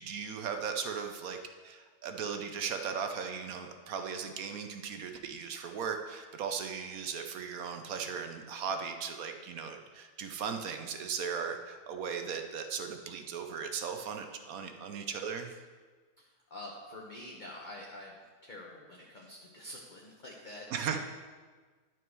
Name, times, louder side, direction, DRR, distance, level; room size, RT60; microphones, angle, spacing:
voice 1, 0.0-1.4 1.6-15.5 20.7-21.0, right 6 dB, 70° right, 5 dB, 1.1 m, -37 dB
voice 2, 16.2-20.7, left 1 dB, 35° left, -3 dB, 1.0 m, -47 dB
11.0 x 6.1 x 4.6 m, 1.4 s
omnidirectional pair, 1.6 m